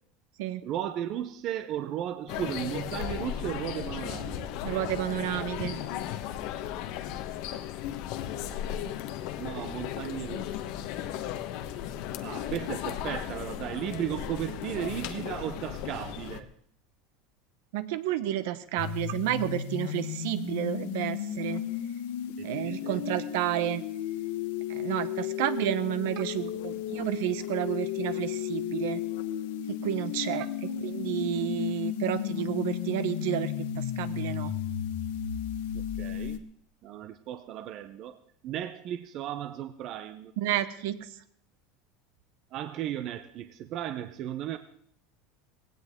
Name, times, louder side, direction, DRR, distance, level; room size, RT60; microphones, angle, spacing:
voice 1, 0.6-4.6 8.3-9.1 9.4-10.7 12.2-16.5 22.4-23.2 35.7-36.4 36.8-38.2 38.4-40.3 42.5-44.6, right 11 dB, 35° right, 10 dB, 0.6 m, -36 dB
sound 1, 2.3-16.4, left 11 dB, 55° left, 1.1 m, -36 dB
voice 2, 4.6-5.8 17.7-21.6 22.4-23.8 24.7-29.0 29.7-30.4 30.8-34.5 40.4-41.0, right 13 dB, 70° right, 12 dB, 1.2 m, -31 dB
sound 2, 18.8-36.4, left 10 dB, 85° left, 1.3 m, -34 dB
19.0 x 16.5 x 3.7 m, 0.65 s
supercardioid pair, 170°, 0 cm